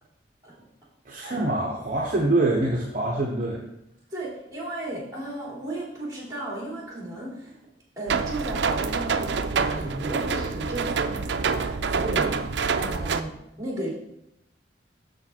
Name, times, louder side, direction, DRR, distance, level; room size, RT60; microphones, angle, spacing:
voice 1, 1.1-3.6, right 2 dB, 45° right, -1 dB, 0.9 m, -25 dB
voice 2, 4.1-7.6 8.0-13.9, right 1 dB, 20° right, -5 dB, 3.1 m, -35 dB
sound 1, 8.1-13.2, right 5 dB, 70° right, 0.5 m, -26 dB
6.8 x 6.8 x 4.4 m, 0.84 s
head